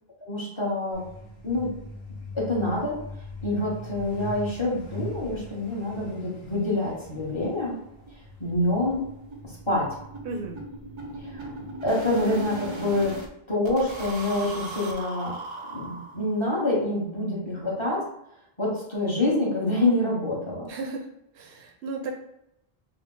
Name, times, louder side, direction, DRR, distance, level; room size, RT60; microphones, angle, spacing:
voice 1, 0.2-1.0 1.4-1.7 2.3-3.0 3.4-7.7 8.4-9.1 9.4-9.9 11.1-11.5 11.8-13.2 13.5-15.4 15.7-18.1 18.6-20.7, left 2 dB, 30° left, -5 dB, 1.1 m, -26 dB
Truck, 0.9-13.2, right 1 dB, 65° left, 1.1 m, -42 dB
sound 1, 6.4-6.5 6.8-6.9 7.2-7.3 7.6-7.8 8.1-13.3 13.6-16.4, right 1 dB, 40° right, 0.5 m, -38 dB
voice 2, 10.2-10.6 17.5-17.7 20.7-21.1 21.3-22.1, right 3 dB, 75° right, 2 dB, 0.8 m, -35 dB
3.4 x 2.0 x 3.8 m, 0.80 s
omnidirectional pair, 1.0 m